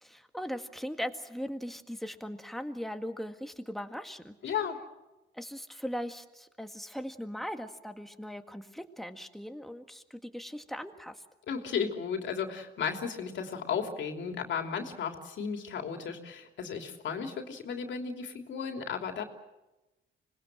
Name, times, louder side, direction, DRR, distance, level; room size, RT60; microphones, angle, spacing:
voice 1, 0.0-4.3 5.3-11.2, equal, ahead, 6 dB, 1.9 m, -39 dB
voice 2, 4.4-4.8 11.5-19.2, left 6 dB, 70° left, 4 dB, 3.2 m, -34 dB
25.5 x 20.0 x 7.7 m, 1.0 s
cardioid pair, 90°, 20 cm